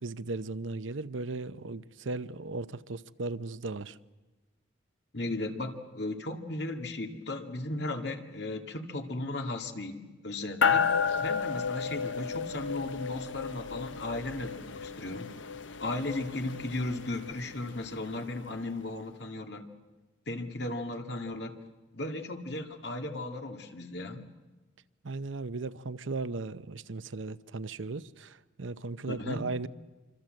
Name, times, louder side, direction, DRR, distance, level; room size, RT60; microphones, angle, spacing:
voice 1, 0.0-4.0 25.0-29.7, right 3 dB, 90° right, 0.7 m, -37 dB
voice 2, 5.1-10.8 11.2-15.3 15.8-19.7 20.3-21.5 21.9-24.2 29.1-29.4, left 2 dB, 60° left, 2.1 m, -36 dB
sound 1, 10.6-18.3, left 6 dB, 80° left, 1.0 m, -32 dB
26.0 x 25.5 x 7.8 m
head